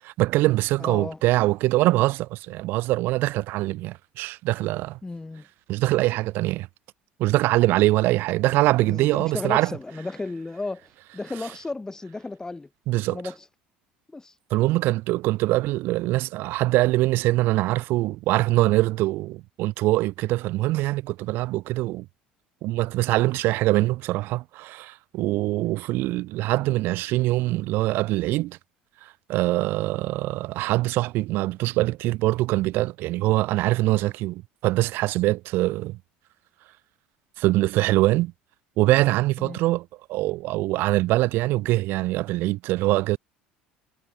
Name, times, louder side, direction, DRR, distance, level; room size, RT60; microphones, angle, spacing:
voice 1, 0.2-5.0 5.7-6.7 7.2-9.7 12.9-13.2 14.5-22.1 22.6-28.6 29.3-36.0 37.4-38.3 38.8-43.2, right 18 dB, 50° right, 0.4 m, -23 dB
voice 2, 0.8-1.2 5.0-5.5 8.8-12.7 13.1-13.5 14.1-14.4 39.4-39.6, left 3 dB, 15° left, 1.1 m, -34 dB
figure-of-eight pair, 65°, 4 cm